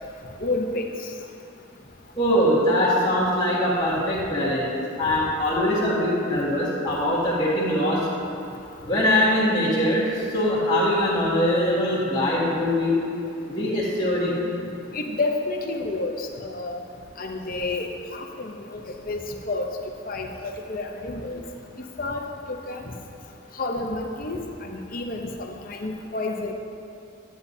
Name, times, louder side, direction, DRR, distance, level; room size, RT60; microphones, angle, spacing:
voice 1, 0.4-0.9 14.9-16.8 17.2-18.8 19.1-19.2 19.5-19.6 20.1-21.4 21.8-22.9 23.6-26.5, left 2 dB, 45° left, 2 dB, 0.7 m, -30 dB
voice 2, 2.2-4.7 5.0-8.1 8.9-13.0 13.5-14.4, left 1 dB, 20° left, -13 dB, 1.7 m, -22 dB
10.0 x 9.7 x 2.7 m, 2.6 s
head